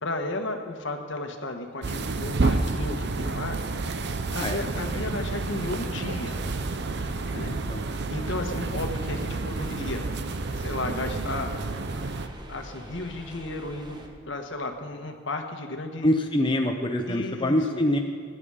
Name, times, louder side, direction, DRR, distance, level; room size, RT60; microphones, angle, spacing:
voice 1, 0.0-3.6 4.3-6.4 7.3-7.5 8.1-10.0 10.6-11.5 12.5-16.1 17.1-17.8, left 2 dB, 65° left, 5 dB, 1.4 m, -34 dB
sound 1, 1.8-12.3, right 3 dB, 60° right, 0.7 m, -30 dB
sound 2, 5.3-14.1, equal, 20° right, 1.3 m, -44 dB
voice 2, 7.4-7.8 16.0-18.0, left 1 dB, 25° left, 3 dB, 0.7 m, -25 dB
18.5 x 9.8 x 4.9 m, 2.1 s
head